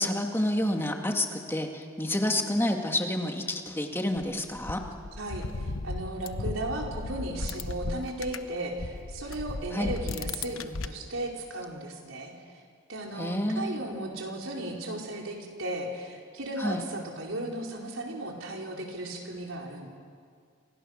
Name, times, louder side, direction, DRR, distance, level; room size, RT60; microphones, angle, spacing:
voice 1, 0.0-4.8 9.7-9.9 13.2-13.8 16.6-16.9, left 1 dB, 10° left, 3 dB, 2.1 m, -29 dB
sound 1, 4.2-8.5 8.8-10.9, left 3 dB, 85° left, 1.0 m, -36 dB
voice 2, 5.2-12.3 12.9-19.9, right 1 dB, 80° right, 0 dB, 4.7 m, -36 dB
29.5 x 26.0 x 6.6 m, 2.1 s
head